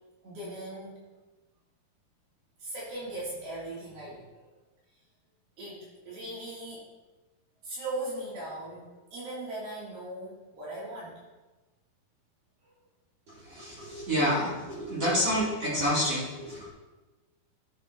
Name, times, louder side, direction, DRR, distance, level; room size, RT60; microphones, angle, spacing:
voice 1, 0.2-1.0 2.6-4.4 5.6-6.8 7.6-11.1 12.6-12.7, right 1 dB, 70° right, -8 dB, 4.4 m, -39 dB
voice 2, 13.4-16.7, equal, 40° right, -8 dB, 3.3 m, -28 dB
13.0 x 9.0 x 2.7 m, 1.2 s
omnidirectional pair, 4.5 m